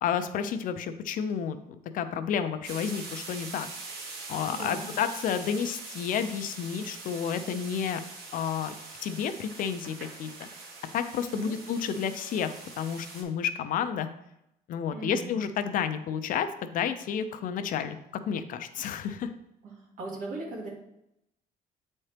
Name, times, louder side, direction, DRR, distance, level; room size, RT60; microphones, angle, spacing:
voice 1, 0.0-3.7 4.3-8.0 8.3-8.7 9.0-10.3 10.9-14.1 14.7-18.0 18.3-19.3, left 8 dB, 55° left, 9 dB, 0.5 m, -31 dB
sound 1, 2.6-13.2, right 3 dB, 75° right, 1.4 m, -43 dB
voice 2, 4.5-4.8 11.3-11.6 14.9-15.4 19.6-20.7, right 3 dB, 60° right, -2 dB, 2.1 m, -38 dB
8.6 x 4.3 x 3.3 m, 0.81 s
cardioid pair, 175°, 16 cm